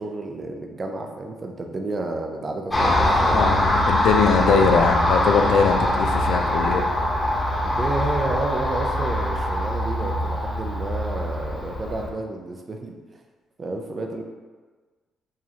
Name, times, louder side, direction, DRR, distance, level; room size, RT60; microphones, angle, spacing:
voice 1, 0.0-3.5 4.5-4.8 7.6-12.9 13.6-14.2, right 2 dB, 35° right, 3 dB, 0.6 m, -31 dB
Car passing by, 2.7-12.1, left 1 dB, 15° left, 1.1 m, -23 dB
voice 2, 3.3-6.9, left 5 dB, 80° left, 5 dB, 0.4 m, -21 dB
4.7 x 3.1 x 2.8 m, 1.4 s
cardioid pair, 90°, 0 cm